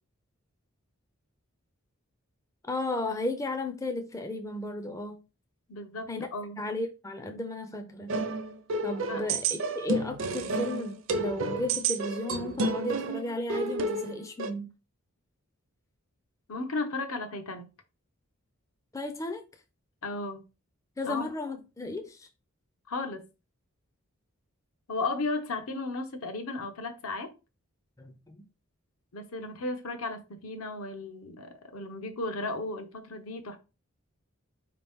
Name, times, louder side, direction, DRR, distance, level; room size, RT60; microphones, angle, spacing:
voice 1, 2.7-5.2 6.1-6.3 6.6-8.1 8.8-14.7 18.9-19.4 21.0-22.3 28.0-28.4, left 2 dB, 15° left, 0.4 m, -34 dB
voice 2, 5.7-6.6 9.1-9.3 16.5-17.7 20.0-20.4 21.0-21.3 22.9-23.2 24.9-27.3 29.1-33.6, left 3 dB, 75° left, 0.8 m, -35 dB
sound 1, 8.1-14.5, right 3 dB, 60° right, 0.5 m, -31 dB
4.6 x 2.9 x 3.5 m
head